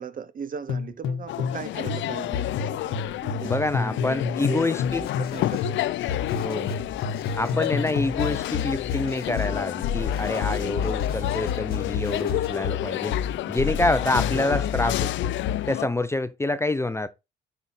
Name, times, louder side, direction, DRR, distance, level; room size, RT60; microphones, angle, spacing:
voice 1, 0.0-4.0 4.4-4.7 5.2-5.8, right 7 dB, 45° right, 0.7 m, -38 dB
sound 1, 0.7-1.6 1.9-5.4 5.6-15.7, left 6 dB, 90° left, 0.9 m, -29 dB
sound 2, 1.3-15.9, left 14 dB, 70° left, 0.4 m, -30 dB
voice 2, 3.4-5.0 6.4-6.8 7.4-13.2 13.5-15.1 15.7-17.1, left 2 dB, 15° left, 0.4 m, -27 dB
sound 3, 4.8-5.6 6.0-9.5 9.9-12.5, left 6 dB, 50° left, 1.5 m, -44 dB
6.0 x 4.7 x 4.2 m
cardioid pair, 90°, 20 cm